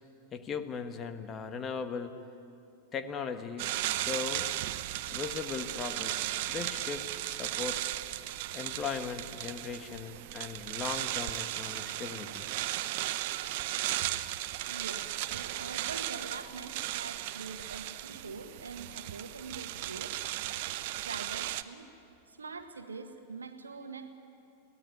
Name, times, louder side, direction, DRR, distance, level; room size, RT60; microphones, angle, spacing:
voice 1, 0.3-2.1 2.9-4.5 5.1-7.8 8.5-12.4, left 6 dB, 25° left, 9 dB, 1.4 m, -38 dB
sound 1, 3.6-21.6, right 15 dB, 50° right, 0.7 m, -36 dB
voice 2, 14.7-20.5 21.0-21.9 22.3-24.1, right 4 dB, 75° right, 8 dB, 1.5 m, -44 dB
23.0 x 17.0 x 9.6 m, 2.7 s
figure-of-eight pair, 90°, 0 cm